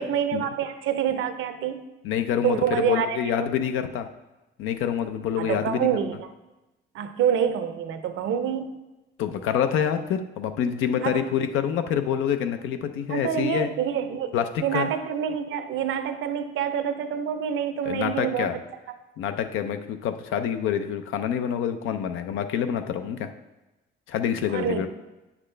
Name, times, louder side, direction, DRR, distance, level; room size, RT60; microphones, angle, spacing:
voice 1, 0.0-1.9 2.4-3.5 5.4-6.2 6.9-8.8 11.0-11.2 13.1-14.3 14.6-18.6 24.5-24.9, right 8 dB, 80° right, 9 dB, 0.7 m, -27 dB
voice 2, 2.0-4.1 4.6-5.9 9.2-13.7 14.3-14.9 17.9-18.6 19.2-23.3 24.1-24.9, left 8 dB, 90° left, 8 dB, 0.6 m, -27 dB
8.4 x 6.0 x 3.3 m, 1.0 s
cardioid pair, 90°, 20 cm